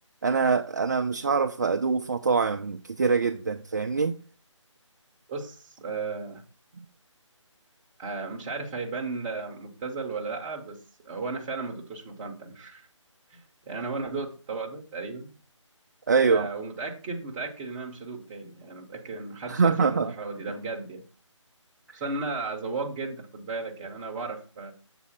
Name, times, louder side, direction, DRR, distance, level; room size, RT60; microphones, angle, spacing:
voice 1, 0.2-4.2 6.8-6.9 16.1-16.5 19.5-20.1, right 5 dB, 35° right, 0.4 m, -24 dB
voice 2, 5.3-6.4 8.0-12.9 13.3-15.3 16.3-21.0 21.9-24.7, right 3 dB, 10° right, 0.8 m, -35 dB
7.5 x 4.2 x 5.5 m
figure-of-eight pair, 160°, 16 cm